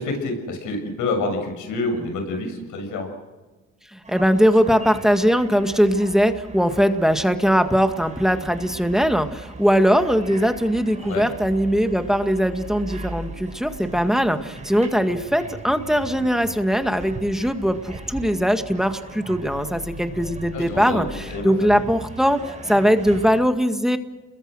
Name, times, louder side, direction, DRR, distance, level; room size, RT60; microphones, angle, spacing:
voice 1, 0.0-3.1 11.1-11.3 20.5-21.0 21.3-21.8, left 2 dB, 85° left, 4 dB, 7.1 m, -27 dB
voice 2, 3.9-24.0, equal, ahead, 7 dB, 1.9 m, -20 dB
sound 1, 4.0-23.4, right 2 dB, 25° right, 7.8 m, -39 dB
30.0 x 22.0 x 6.4 m, 1.2 s
cardioid pair, 90°, 30 cm